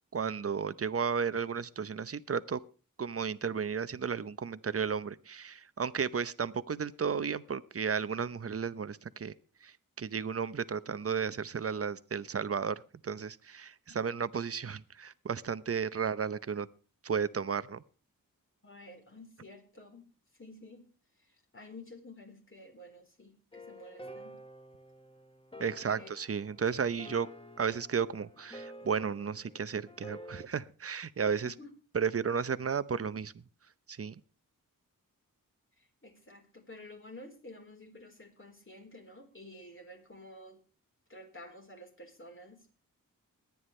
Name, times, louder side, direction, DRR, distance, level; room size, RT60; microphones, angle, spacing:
voice 1, 0.1-2.6 3.0-9.3 9.6-16.7 17.0-17.8 25.6-27.3 27.6-31.5 31.9-33.3 33.9-34.1, right 6 dB, 45° right, 15 dB, 0.8 m, -33 dB
voice 2, 18.6-20.1 20.4-20.9 21.2-24.4 25.5-26.1 31.4-31.7 35.8-40.6 41.1-42.7, left 1 dB, 35° left, 3 dB, 4.2 m, -51 dB
sound 1, 23.5-30.5, equal, 15° left, 1.3 m, -50 dB
22.0 x 9.5 x 3.3 m, 0.37 s
cardioid pair, 65°, 34 cm